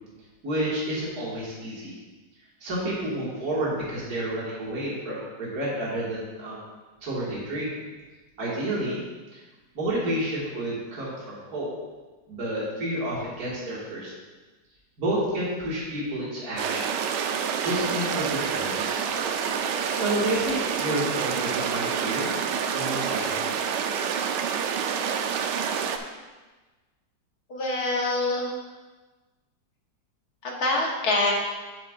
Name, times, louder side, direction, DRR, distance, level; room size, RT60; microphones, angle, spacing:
voice 1, 0.4-1.9 2.6-6.6 7.0-7.8 8.4-9.0 9.3-9.4 9.7-11.7 12.3-14.1 15.0-16.9 17.6-19.0 19.9-22.4 22.7-23.5, right 1 dB, 55° right, -7 dB, 2.4 m, -30 dB
sound 1, 16.6-26.0, right 7 dB, 80° right, 1.2 m, -28 dB
voice 2, 27.5-28.5 30.4-31.3, left 2 dB, 60° left, -1 dB, 1.7 m, -25 dB
9.1 x 8.1 x 2.5 m, 1.3 s
omnidirectional pair, 1.9 m